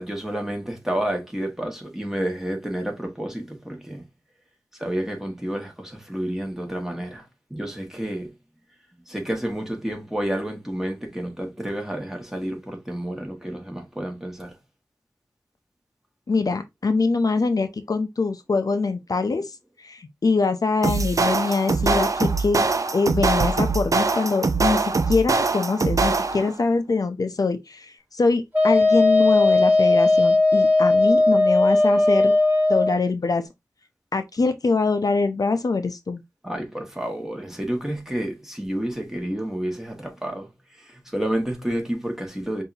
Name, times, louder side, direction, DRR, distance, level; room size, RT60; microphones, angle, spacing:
voice 1, 0.0-4.0 4.8-7.2 7.5-8.3 9.1-14.5 36.4-40.5 40.8-42.6, right 1 dB, 5° right, 1.6 m, -30 dB
voice 2, 16.3-19.5 19.8-22.7 22.9-32.3 32.7-33.4 34.1-36.2, left 4 dB, 70° left, 0.5 m, -23 dB
sound 1, 20.8-26.5, right 3 dB, 55° right, 0.5 m, -23 dB
Wind instrument woodwind instrument, 28.5-32.9, left 2 dB, 25° right, 2.6 m, -17 dB
5.4 x 2.7 x 2.7 m
wide cardioid pair, 65°, 7 cm